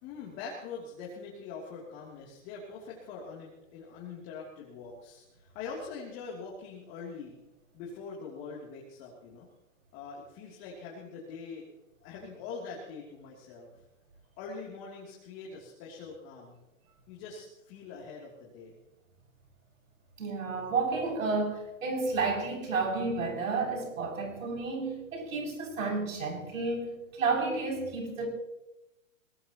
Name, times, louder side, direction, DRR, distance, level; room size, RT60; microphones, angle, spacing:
voice 1, 0.0-7.4 7.7-9.5 9.9-11.7 12.0-13.7 14.4-16.6 17.1-18.8, left 5 dB, 30° left, -3 dB, 3.1 m, -43 dB
voice 2, 20.2-28.3, right 4 dB, 75° right, 0 dB, 7.6 m, -31 dB
23.0 x 19.0 x 3.0 m, 0.95 s
hypercardioid pair, 150°, 40 cm